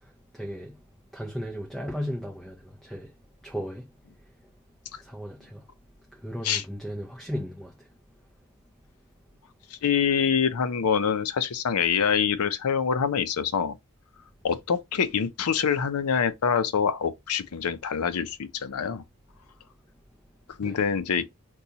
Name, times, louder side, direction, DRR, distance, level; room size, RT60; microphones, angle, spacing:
voice 1, 0.3-0.7 1.1-3.1 3.4-3.9 5.0-5.6 6.2-7.7 20.6-20.8, equal, ahead, 0.5 m, -35 dB
voice 2, 9.7-13.8 14.4-19.0 20.6-21.3, left 7 dB, 80° left, 0.5 m, -25 dB
4.0 x 2.3 x 2.8 m
head